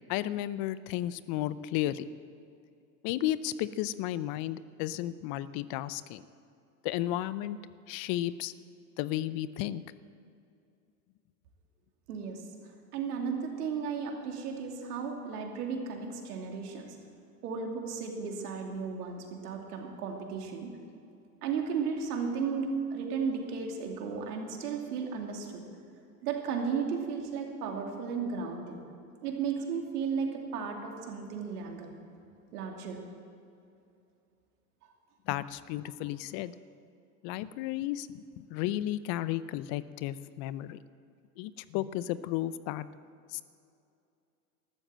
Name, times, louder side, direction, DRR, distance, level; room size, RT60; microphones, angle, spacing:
voice 1, 0.1-2.0 3.0-6.2 6.8-7.6 7.9-8.5 9.0-9.8 35.3-36.5 37.2-40.8 41.4-42.9 43.3-43.4, left 13 dB, 50° left, 16 dB, 0.7 m, -33 dB
voice 2, 12.1-12.4 12.9-17.0 17.4-20.7 21.4-25.7 26.2-28.8 29.2-31.9 32.5-33.0, right 5 dB, 75° right, 2 dB, 2.7 m, -34 dB
13.5 x 12.5 x 7.5 m, 2.5 s
hypercardioid pair, 95°, 46 cm